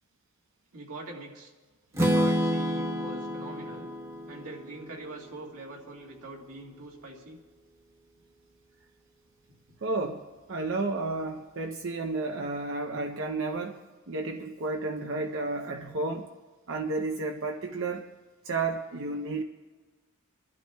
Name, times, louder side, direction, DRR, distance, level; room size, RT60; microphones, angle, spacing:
voice 1, 0.7-1.5 1.9-3.9 4.3-7.4, right 2 dB, 85° right, 1.9 m, -43 dB
Strum, 1.9-5.9, equal, 15° right, 1.1 m, -30 dB
voice 2, 9.8-10.2 10.5-16.3 16.7-18.1 18.4-19.4, right 3 dB, 60° right, 0.7 m, -32 dB
27.0 x 12.0 x 2.3 m
head